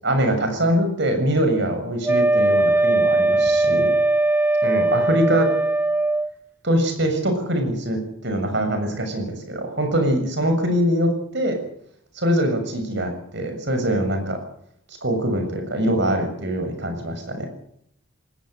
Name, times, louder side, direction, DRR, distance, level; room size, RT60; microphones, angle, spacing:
voice 1, 0.0-3.9 4.6-5.5 6.6-11.6 12.2-14.4 15.0-17.5, equal, 55° right, 6 dB, 7.1 m, -23 dB
Wind instrument woodwind instrument, 2.0-6.3, right 2 dB, 10° right, 0.8 m, -19 dB
20.0 x 18.5 x 8.1 m, 0.69 s
head